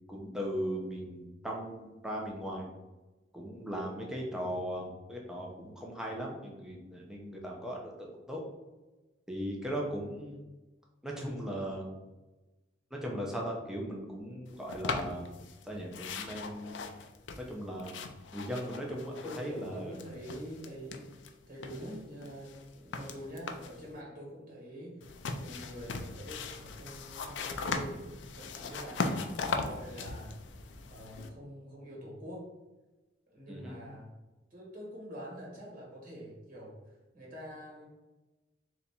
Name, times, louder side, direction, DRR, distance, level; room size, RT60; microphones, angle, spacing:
voice 1, 0.1-2.7 3.3-8.4 9.3-10.4 11.0-11.8 12.9-15.3 15.6-16.8 17.4-19.9 29.0-29.2 33.5-33.8, equal, 5° right, -2 dB, 0.5 m, -38 dB
sound 1, 14.7-15.6 15.9-19.7 19.9-21.3 21.6-23.8 25.0-31.3, left 4 dB, 70° left, 0.4 m, -39 dB
voice 2, 19.0-21.2 21.5-28.1 28.3-30.4 30.9-32.5 33.3-34.1 34.5-37.8, equal, 50° right, -4 dB, 1.3 m, -45 dB
3.4 x 2.8 x 4.1 m, 1.1 s
head